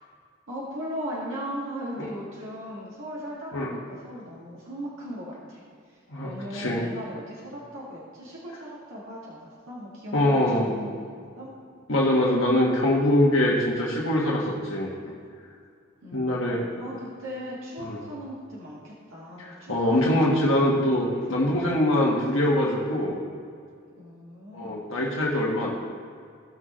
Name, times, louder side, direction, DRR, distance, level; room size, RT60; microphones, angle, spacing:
voice 1, 0.5-11.0 11.4-11.5 16.0-20.4 21.1-21.6 24.0-24.8, equal, 75° right, -7 dB, 2.0 m, -38 dB
voice 2, 6.1-6.8 10.1-10.7 11.9-14.9 16.1-16.6 17.8-18.0 19.4-23.2 24.5-25.7, left 1 dB, 70° left, -4 dB, 1.5 m, -23 dB
16.5 x 6.3 x 3.1 m, 2.2 s
head